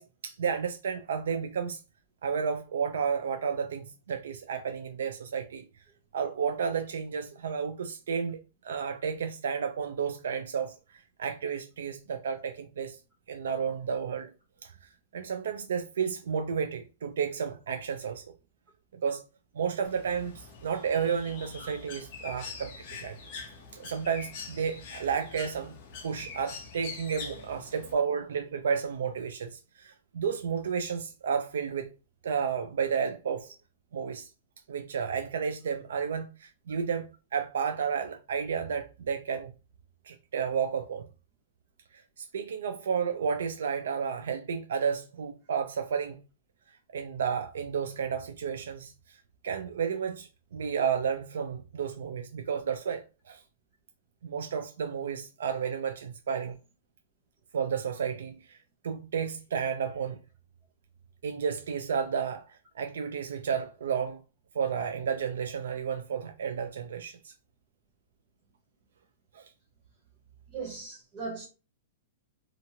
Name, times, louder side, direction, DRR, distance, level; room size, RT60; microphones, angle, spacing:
voice 1, 0.0-1.8 2.2-5.7 6.1-8.4 8.6-13.0 13.3-14.3 14.6-14.7 15.1-18.3 18.9-19.2 19.5-22.7 23.0-23.2 23.7-25.7 26.0-31.9 32.2-33.5 33.9-34.3 34.7-39.5 40.0-41.1 42.2-46.2 46.9-49.2 49.4-53.4 54.2-56.6 57.5-58.6 58.8-60.2 61.2-62.4 62.7-64.2 64.5-67.3 69.3-69.5, right 6 dB, 85° right, 0.4 m, -32 dB
Bird, 19.8-27.9, left 5 dB, 35° left, 0.6 m, -44 dB
voice 2, 70.5-71.5, right 4 dB, 25° right, 0.7 m, -38 dB
2.9 x 2.4 x 2.7 m
supercardioid pair, 175°, 0 cm